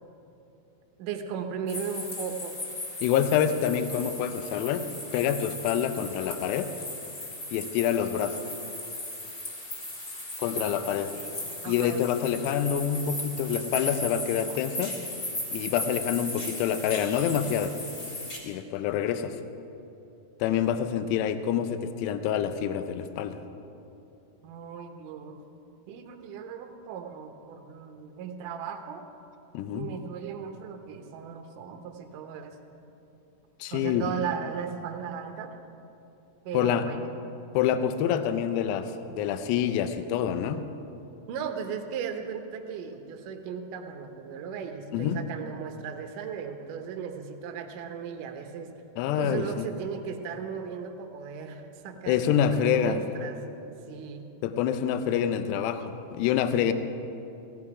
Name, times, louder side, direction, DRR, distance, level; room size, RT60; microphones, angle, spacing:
voice 1, 1.0-2.6 10.6-11.3 11.6-12.0 14.5-14.6 24.4-25.4 25.9-29.0 29.7-32.6 33.7-35.5 36.4-37.1 41.3-48.7 49.2-53.4 53.9-54.3, right 7 dB, 75° right, 5 dB, 2.0 m, -37 dB
sound 1, 1.7-18.4, left 2 dB, 30° left, 1.7 m, -37 dB
voice 2, 3.0-4.9 5.1-6.7 7.5-8.4 10.4-11.1 11.7-15.0 15.5-17.7 18.4-19.4 20.4-23.4 29.5-29.9 33.6-34.1 36.5-36.9 37.5-40.6 44.9-45.2 49.0-49.7 52.1-53.0 54.4-56.7, left 9 dB, 80° left, 10 dB, 2.8 m, -27 dB
16.0 x 13.5 x 4.8 m, 2.8 s
omnidirectional pair, 4.9 m